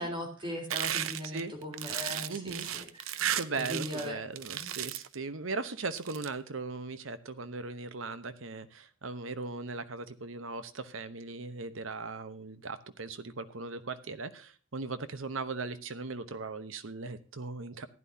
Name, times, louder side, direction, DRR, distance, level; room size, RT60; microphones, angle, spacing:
voice 1, 0.0-3.2 3.5-4.2 4.6-4.7, equal, 25° right, 2 dB, 3.8 m, -39 dB
sound 1, 0.7-4.1 4.4-5.1 5.8-6.3, right 11 dB, 90° right, 0.6 m, -34 dB
voice 2, 2.3-2.7 3.4-17.9, right 3 dB, 70° right, 12 dB, 1.0 m, -38 dB
15.0 x 10.5 x 2.8 m, 0.37 s
head